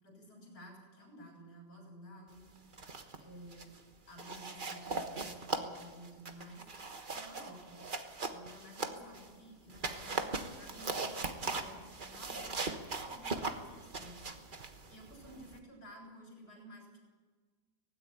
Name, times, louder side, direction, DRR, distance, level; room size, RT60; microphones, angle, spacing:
voice 1, 0.0-2.4 3.2-3.8 4.1-6.7 7.1-7.8 8.3-14.2 14.9-17.0, equal, 60° left, 0 dB, 7.4 m, -53 dB
sound 1, 2.6-3.2 3.5-3.8 4.2-9.3 9.7-15.6, right 3 dB, 30° right, 1.3 m, -40 dB
18.0 x 16.0 x 9.7 m, 1.4 s
omnidirectional pair, 1.9 m